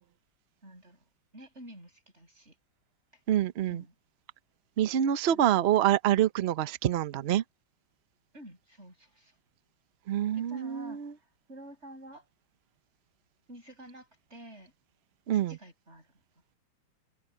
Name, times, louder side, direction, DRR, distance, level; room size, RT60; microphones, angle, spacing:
voice 1, 0.6-1.0 1.3-2.6 3.7-3.9 5.2-5.7 8.3-9.4 10.3-11.1 11.5-12.2 13.5-14.7 15.3-16.1, right 1 dB, 35° right, 7.1 m, -49 dB
voice 2, 3.3-3.8 4.8-7.4 10.1-11.1 15.3-15.6, right 11 dB, 70° right, 0.6 m, -26 dB
omnidirectional pair, 2.1 m